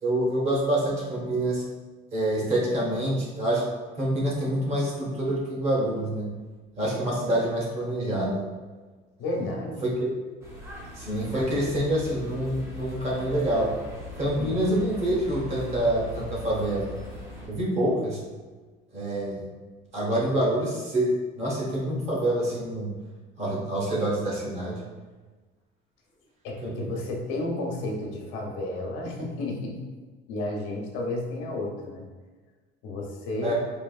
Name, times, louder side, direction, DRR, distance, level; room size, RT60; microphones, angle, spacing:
voice 1, 0.0-1.6 2.1-3.6 4.0-6.3 6.8-8.4 9.8-9.9 11.0-13.7 14.2-16.9 17.5-18.2 18.9-19.4 19.9-21.1 21.4-22.9 23.4-24.8 26.6-26.7 33.4-33.5, right 1 dB, 30° right, -4 dB, 1.0 m, -26 dB
voice 2, 9.2-9.8 14.4-14.6 26.4-29.8 30.3-32.0 32.8-33.5, left 2 dB, 75° left, 0 dB, 0.8 m, -32 dB
sound 1, 10.4-17.5, left 1 dB, 15° right, 0.5 m, -40 dB
4.5 x 3.0 x 2.3 m, 1.3 s
cardioid pair, 180°, 20 cm